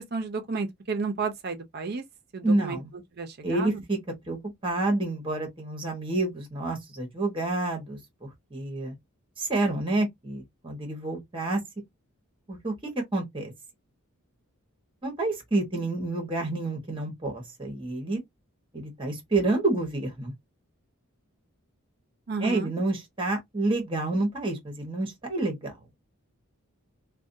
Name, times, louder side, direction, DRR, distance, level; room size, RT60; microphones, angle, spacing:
voice 1, 0.1-2.0 2.3-2.8 3.2-3.8 22.3-22.7, right 4 dB, 45° right, 0.5 m, -32 dB
voice 2, 2.4-2.9 3.4-4.0 4.3-8.9 9.4-11.6 12.5-13.5 15.0-18.2 18.7-20.3 22.4-25.7, right 2 dB, 25° right, 1.0 m, -29 dB
2.5 x 2.2 x 2.5 m
head